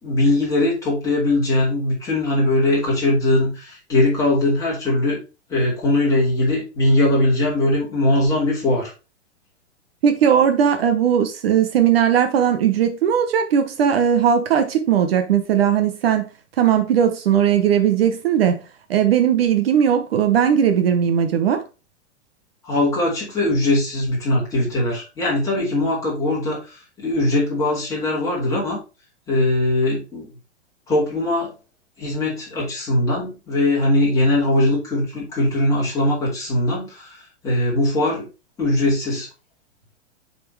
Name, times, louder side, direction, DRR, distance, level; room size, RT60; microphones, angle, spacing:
voice 1, 0.0-5.2 5.5-8.9 22.6-28.8 29.3-30.3 30.9-31.5 32.0-38.3 38.6-39.3, left 2 dB, 10° left, 2.8 m, -20 dB
voice 2, 10.0-16.3 16.6-18.6 18.9-21.6, right 8 dB, 55° right, 1.0 m, -18 dB
6.6 x 4.3 x 4.6 m
supercardioid pair, 175°, 35 cm